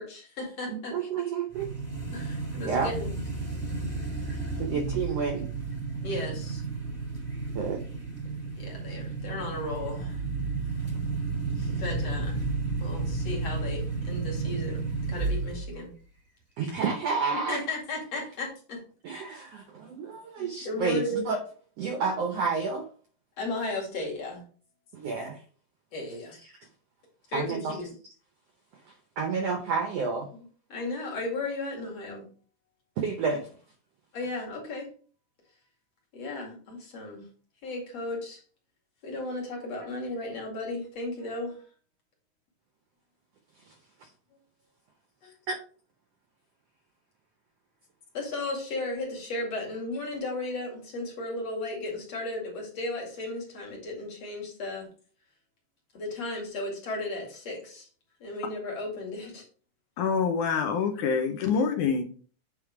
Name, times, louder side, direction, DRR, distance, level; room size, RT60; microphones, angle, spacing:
voice 1, 0.0-0.9 2.1-3.2 6.0-6.6 8.6-10.2 11.6-12.5 12.8-15.9 17.3-18.8 20.4-21.3 23.4-24.4 25.9-26.4 27.3-27.9 30.3-30.4 30.7-32.3 34.1-34.9 36.1-37.2 37.6-38.4 39.0-41.6 45.2-45.3 48.1-54.9 55.9-57.9 58.2-59.4, left 2 dB, 50° left, 3.2 m, -35 dB
voice 2, 0.7-1.7 2.1-2.2 2.6-2.9 4.6-5.5 7.5-7.8 16.6-17.6 19.0-21.4 21.8-22.9 24.9-25.4 27.3-27.8 29.2-30.3 33.0-33.5 45.5-45.6, right 5 dB, 75° right, 1.5 m, -30 dB
sound 1, 1.5-15.8, right 3 dB, 10° left, 0.9 m, -32 dB
voice 3, 60.0-62.0, left 6 dB, 75° left, 2.3 m, -26 dB
8.6 x 3.7 x 4.6 m
omnidirectional pair, 3.8 m